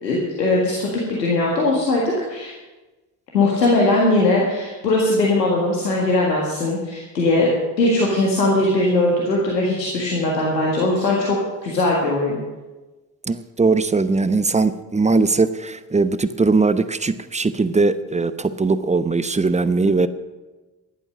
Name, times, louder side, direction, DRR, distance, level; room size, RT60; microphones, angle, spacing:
voice 1, 0.0-2.0 2.3-2.5 3.3-7.5 7.8-12.4, left 2 dB, 85° left, -3 dB, 1.8 m, -20 dB
voice 2, 13.3-20.1, right 3 dB, 15° right, 13 dB, 0.8 m, -20 dB
14.0 x 11.5 x 6.4 m, 1.2 s
figure-of-eight pair, 40°, 49 cm